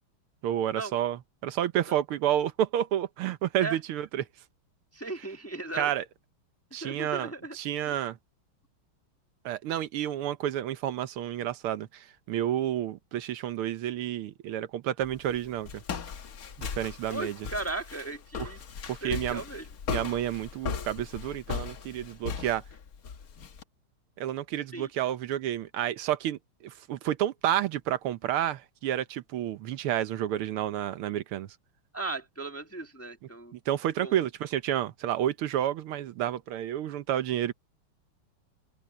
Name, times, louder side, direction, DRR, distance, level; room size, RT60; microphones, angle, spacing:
voice 1, 0.4-4.3 5.8-6.0 6.7-8.2 9.4-15.8 16.6-17.4 18.4-18.5 18.9-19.4 19.9-22.6 24.2-31.5 33.5-37.5, right 11 dB, 85° right, 1.8 m, -30 dB
voice 2, 4.9-5.9 6.8-7.6 7.9-8.0 17.1-18.6 19.0-19.7 24.7-24.9 31.9-33.5 34.0-34.1, right 2 dB, 10° left, 1.1 m, -36 dB
Walk footsteps, 15.0-23.6, left 6 dB, 50° left, 1.4 m, -38 dB
omnidirectional pair, 2.4 m